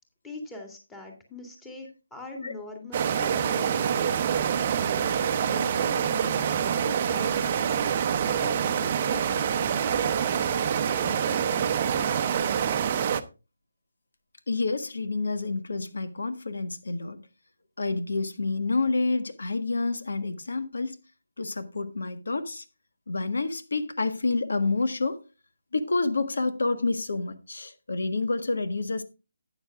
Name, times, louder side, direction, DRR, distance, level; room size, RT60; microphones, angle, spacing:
voice 1, 0.2-4.6 5.4-7.8 8.3-12.1, left 2 dB, 5° left, 2.1 m, -42 dB
sound 1, 2.9-13.2, right 8 dB, 35° right, 0.8 m, -26 dB
voice 2, 14.5-17.2 17.8-21.0 21.4-22.6 23.1-25.2 25.7-29.0, left 3 dB, 75° left, 1.4 m, -28 dB
12.5 x 9.0 x 2.4 m
figure-of-eight pair, 155°, 0 cm